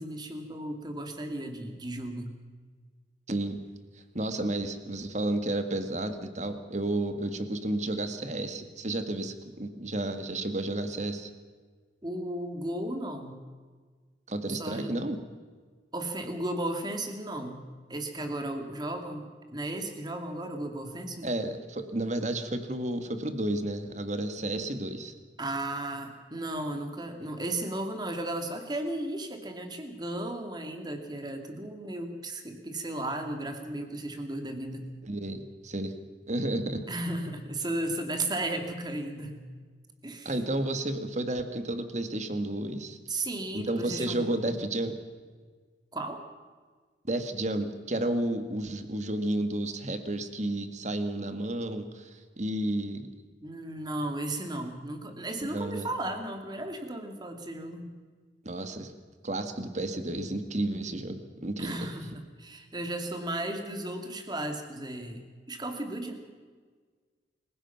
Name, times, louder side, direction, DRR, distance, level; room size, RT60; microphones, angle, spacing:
voice 1, 0.0-2.3 12.0-13.4 14.5-15.0 15.9-21.3 25.4-34.9 36.9-39.5 40.0-40.3 43.1-44.6 45.9-46.2 53.4-58.0 61.6-66.1, right 1 dB, 25° right, 5 dB, 2.5 m, -35 dB
voice 2, 3.3-3.6 4.1-11.3 14.3-15.2 21.2-25.1 35.1-35.9 36.3-36.8 40.3-43.0 43.5-45.0 47.1-53.1 55.5-55.9 58.4-58.9 59.2-61.9, right 1 dB, 40° right, 8 dB, 1.9 m, -32 dB
28.0 x 16.5 x 5.9 m, 1.5 s
head